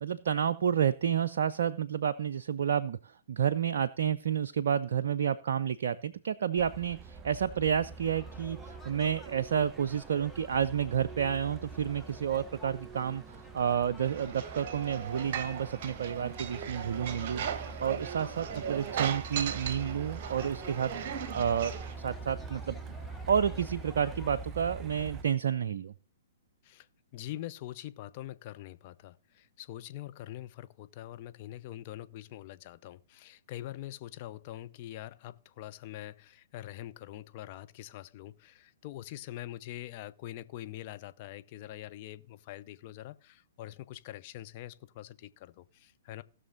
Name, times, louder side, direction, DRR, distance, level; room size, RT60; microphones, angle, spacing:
voice 1, 0.0-22.8 23.3-25.9, right 8 dB, 60° right, 0.4 m, -30 dB
Truck, 6.6-25.2, right 4 dB, 20° right, 0.9 m, -45 dB
sound 1, 7.8-24.4, left 2 dB, 5° left, 1.1 m, -54 dB
sound 2, 14.0-21.9, right 8 dB, 45° right, 1.2 m, -38 dB
voice 2, 27.1-46.2, left 14 dB, 40° left, 0.6 m, -44 dB
17.5 x 6.3 x 3.8 m
figure-of-eight pair, 115°, 0 cm